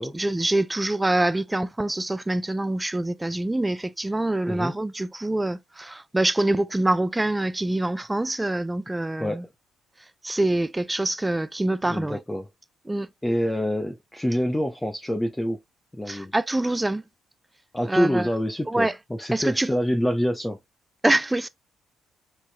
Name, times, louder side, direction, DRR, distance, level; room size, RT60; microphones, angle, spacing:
voice 1, 0.0-9.4 10.2-12.2 12.9-13.1 16.1-17.0 17.9-18.3 18.7-18.9 19.3-19.7 21.0-21.5, right 1 dB, 15° right, 0.5 m, -25 dB
voice 2, 11.9-12.5 13.2-15.6 15.9-16.3 17.7-20.6, equal, 10° left, 0.8 m, -26 dB
4.6 x 4.0 x 2.2 m
hypercardioid pair, 45°, 0 cm